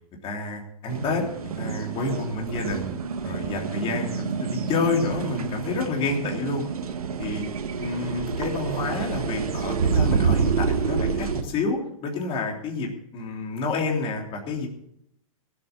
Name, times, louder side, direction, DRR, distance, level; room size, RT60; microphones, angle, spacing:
voice 1, 0.2-3.0 3.2-6.7 7.2-7.4 7.8-14.7, left 3 dB, 30° left, 1 dB, 3.3 m, -29 dB
sound 1, 0.9-11.4, right 6 dB, 85° right, 1.6 m, -28 dB
16.5 x 8.2 x 7.1 m, 0.75 s
hypercardioid pair, 125°, 18 cm